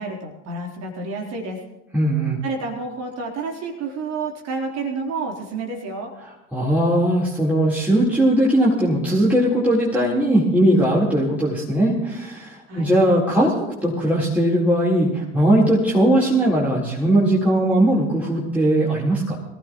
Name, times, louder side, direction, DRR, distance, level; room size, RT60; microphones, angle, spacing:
voice 1, 0.0-1.6 2.4-6.1 12.7-12.9, right 3 dB, 45° right, 0 dB, 3.9 m, -29 dB
voice 2, 1.9-2.4 6.2-13.5 13.8-19.4, right 1 dB, 5° right, -7 dB, 4.1 m, -19 dB
24.0 x 15.5 x 3.1 m, 0.96 s
figure-of-eight pair, 70°, 35 cm